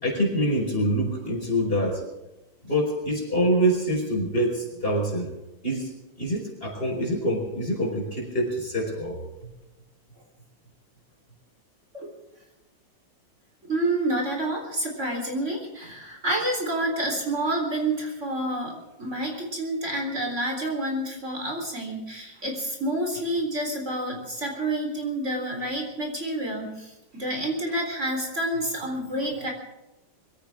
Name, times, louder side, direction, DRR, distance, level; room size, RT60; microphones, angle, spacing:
voice 1, 0.0-2.0 2.6-5.3 5.6-5.9 6.2-9.2, equal, 30° left, 0 dB, 5.4 m, -25 dB
voice 2, 13.7-29.5, right 1 dB, 40° right, 1 dB, 4.3 m, -29 dB
23.5 x 17.0 x 3.6 m, 0.98 s
omnidirectional pair, 2.0 m